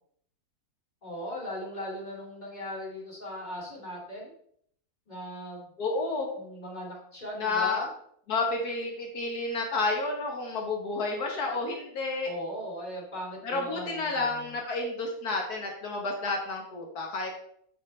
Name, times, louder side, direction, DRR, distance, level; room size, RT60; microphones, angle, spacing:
voice 1, 1.0-4.3 5.1-5.7 6.4-7.9 12.2-14.5, equal, 30° left, -3 dB, 2.6 m, -38 dB
voice 2, 5.8-6.3 7.4-7.9 8.3-12.3 13.4-17.3, left 3 dB, 80° left, 1 dB, 1.8 m, -30 dB
8.1 x 7.3 x 3.2 m, 0.67 s
omnidirectional pair, 1.6 m